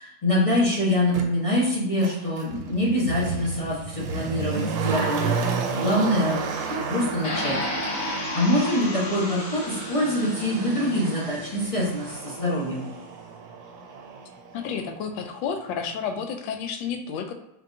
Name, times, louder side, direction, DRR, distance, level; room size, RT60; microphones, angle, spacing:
voice 1, 0.0-5.4 5.7-7.6 8.0-12.9, left 1 dB, 30° left, -8 dB, 0.6 m, -25 dB
Motor vehicle (road), 1.1-1.3 2.0-14.9 15.2-15.3, right 5 dB, 80° right, 1.5 m, -32 dB
sound 1, 7.2-12.2, left 1 dB, 50° left, 1.1 m, -33 dB
voice 2, 14.5-17.3, left 6 dB, 75° left, 5 dB, 1.1 m, -31 dB
5.1 x 2.7 x 2.7 m, 0.88 s
omnidirectional pair, 2.3 m